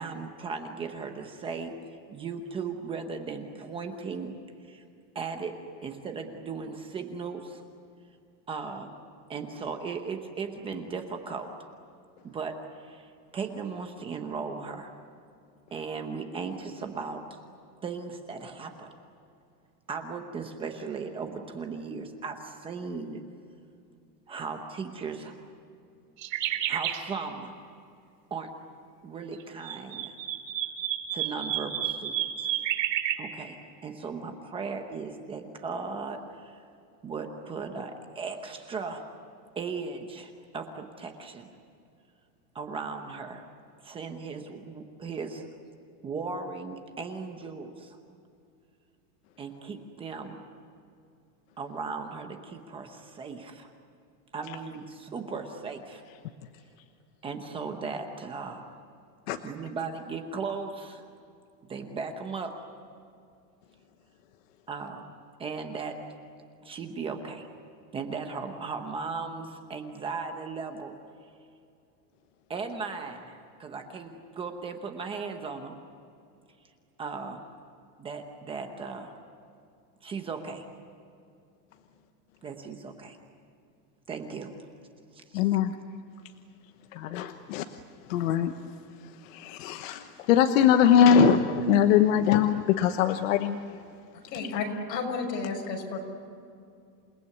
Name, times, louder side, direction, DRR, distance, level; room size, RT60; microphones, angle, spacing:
voice 1, 0.0-1.8 2.1-4.3 4.6-4.8 5.1-5.5 5.8-7.6 8.5-8.9 9.3-11.5 12.2-14.9 15.7-17.4 17.8-18.9 19.9-23.2 24.3-25.4 26.7-27.5 28.3-28.5 29.0-30.1 31.1-32.5 33.2-33.6 33.8-36.6 37.0-39.0 39.6-41.5 42.5-43.4 43.8-45.4 46.0-48.0 49.4-50.3 51.6-53.7 54.3-56.0 57.2-58.7 59.4-61.1 61.7-62.5 64.7-65.0 65.4-66.0 66.6-67.5 67.9-70.9 72.5-75.7 77.0-77.4 78.0-79.1 80.0-80.7 82.4-83.2 84.1-84.5 85.1-85.4, right 5 dB, 10° right, 5 dB, 0.9 m, -37 dB
sound 1, 26.2-27.0 29.4-33.2, right 11 dB, 80° right, 3.9 m, -30 dB
voice 2, 85.3-85.7 87.0-87.6 88.1-88.5 89.3-93.6, left 8 dB, 50° left, 7 dB, 1.2 m, -22 dB
voice 3, 94.1-96.0, left 4 dB, 85° left, 3 dB, 6.3 m, -32 dB
28.0 x 19.0 x 9.7 m, 2.5 s
supercardioid pair, 175°, 49 cm